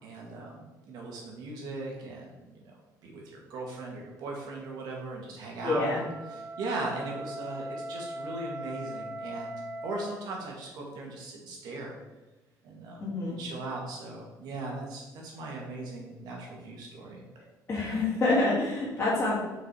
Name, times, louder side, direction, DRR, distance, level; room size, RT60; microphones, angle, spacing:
voice 1, 0.0-2.7 3.0-11.9 12.6-17.2, right 2 dB, 65° right, -1 dB, 2.2 m, -39 dB
Wind instrument woodwind instrument, 5.5-10.2, right 1 dB, 40° right, 0.6 m, -40 dB
voice 2, 5.6-6.0 13.0-13.4 17.7-19.3, left 2 dB, 25° left, -10 dB, 2.2 m, -27 dB
6.0 x 5.0 x 4.9 m, 1.1 s
cardioid pair, 165°, 7 cm